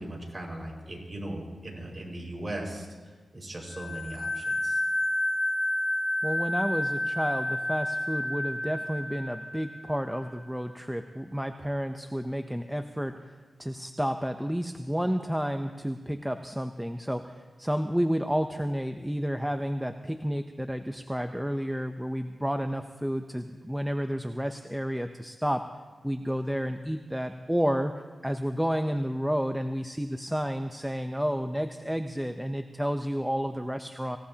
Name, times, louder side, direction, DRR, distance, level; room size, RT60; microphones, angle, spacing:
voice 1, 0.0-2.9 3.3-4.8, right 1 dB, 25° right, -1 dB, 5.2 m, -38 dB
sound 1, 3.7-10.2, left 1 dB, 55° left, 1.1 m, -30 dB
voice 2, 6.2-13.2 13.6-25.7 26.0-27.9 28.2-34.2, equal, 5° right, 7 dB, 0.7 m, -31 dB
25.0 x 16.5 x 2.9 m, 1.4 s
cardioid pair, 65°, 0 cm